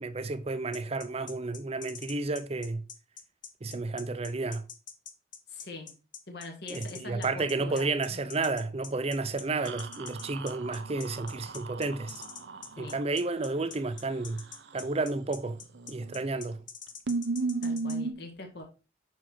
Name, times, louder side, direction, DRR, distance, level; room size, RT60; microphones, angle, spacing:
voice 1, 0.0-2.8 3.6-4.6 6.7-12.2 12.8-14.4 14.7-15.6 15.9-16.6, right 3 dB, 35° right, 0.6 m, -31 dB
sound 1, 0.7-18.0, left 7 dB, 50° left, 0.9 m, -45 dB
voice 2, 5.5-5.9 6.3-8.2 12.8-13.0 17.6-18.6, left 2 dB, 65° left, 1.6 m, -43 dB
sound 2, 9.6-13.0 15.7-16.2 16.5-16.6 17.1-18.1, right 3 dB, 80° right, 0.7 m, -35 dB
6.0 x 4.6 x 4.4 m
head